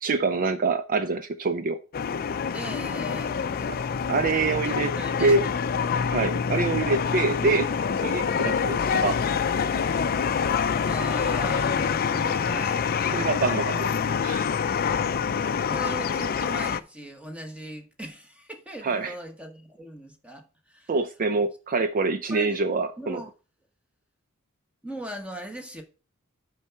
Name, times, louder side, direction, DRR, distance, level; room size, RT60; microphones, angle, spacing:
voice 1, 0.0-1.8 4.1-4.9 5.2-5.4 6.1-7.7 8.0-9.2 13.1-13.9 14.2-14.5 18.8-19.1 20.9-23.2, right 3 dB, 40° right, 0.4 m, -25 dB
sound 1, 1.9-16.8, left 6 dB, 45° left, 0.4 m, -26 dB
voice 2, 2.5-4.0 4.6-5.5 8.3-8.4 10.8-12.8 15.7-20.9 22.3-22.6 23.0-23.3 24.8-25.8, right 1 dB, 5° right, 1.0 m, -39 dB
7.3 x 4.7 x 5.7 m
head